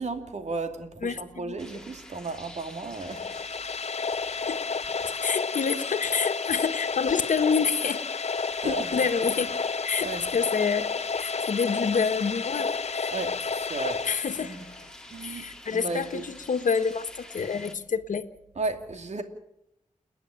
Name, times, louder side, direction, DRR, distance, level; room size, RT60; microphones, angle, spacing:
voice 1, 0.0-3.4 8.6-9.0 10.0-10.2 13.1-13.4 13.7-14.0 14.4-14.7 15.0-15.4 15.7-16.3 18.6-19.2, right 3 dB, 60° right, 7 dB, 2.6 m, -34 dB
voice 2, 1.0-1.6 4.4-4.6 5.2-8.0 8.6-13.1 14.1-14.6 15.2-18.3, left 6 dB, 85° left, 9 dB, 1.4 m, -28 dB
sound 1, 1.6-17.7, left 1 dB, 5° left, 3.0 m, -47 dB
sound 2, 2.9-14.8, left 5 dB, 55° left, 0.8 m, -31 dB
30.0 x 10.0 x 8.9 m, 0.80 s
wide cardioid pair, 75°, 13 cm